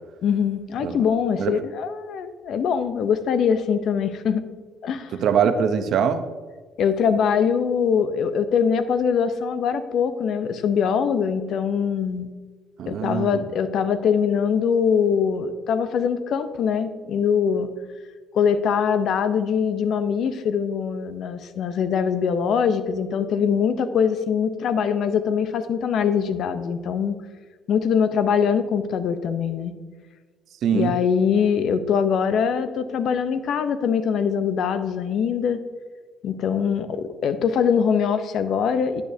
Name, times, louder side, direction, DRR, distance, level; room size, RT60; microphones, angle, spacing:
voice 1, 0.2-4.4 4.8-5.2 6.8-12.3 12.9-17.7 18.3-27.2 27.7-29.7 30.7-35.6 36.2-39.0, left 7 dB, 65° left, 11 dB, 0.6 m, -23 dB
voice 2, 5.2-6.2 12.8-13.4 30.6-31.0, right 7 dB, 65° right, 9 dB, 0.7 m, -22 dB
10.5 x 8.1 x 2.7 m, 1.4 s
supercardioid pair, 80°, 0 cm